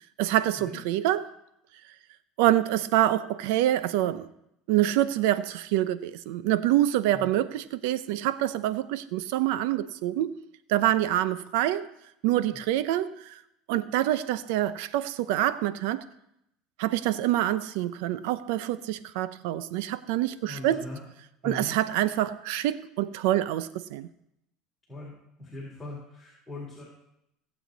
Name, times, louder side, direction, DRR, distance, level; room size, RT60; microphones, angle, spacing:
voice 1, 0.2-1.3 2.4-4.3 4.7-10.3 10.7-11.9 12.2-13.4 13.7-16.0 16.8-20.8 21.4-24.1, right 13 dB, 75° right, 0.7 m, -26 dB
voice 2, 20.4-21.0 21.4-21.7 24.9-25.1 25.4-26.8, left 2 dB, 10° left, 4.1 m, -40 dB
18.0 x 7.9 x 4.1 m
supercardioid pair, 110°, 0 cm